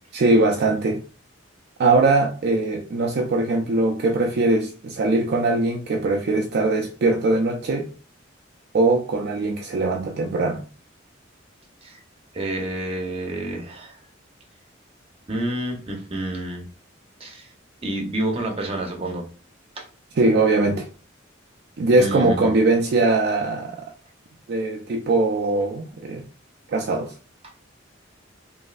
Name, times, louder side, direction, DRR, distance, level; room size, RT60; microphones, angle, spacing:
voice 1, 0.1-1.0 1.8-7.9 8.7-10.6 20.2-20.9 21.8-23.9 24.5-26.2 26.7-27.1, right 2 dB, 55° right, 0.4 m, -21 dB
voice 2, 12.3-14.0 15.3-16.7 17.2-17.5 17.8-19.2 19.8-19.9 22.0-22.5 27.4-27.5, right 1 dB, 30° right, 0.7 m, -29 dB
3.1 x 2.6 x 2.4 m
head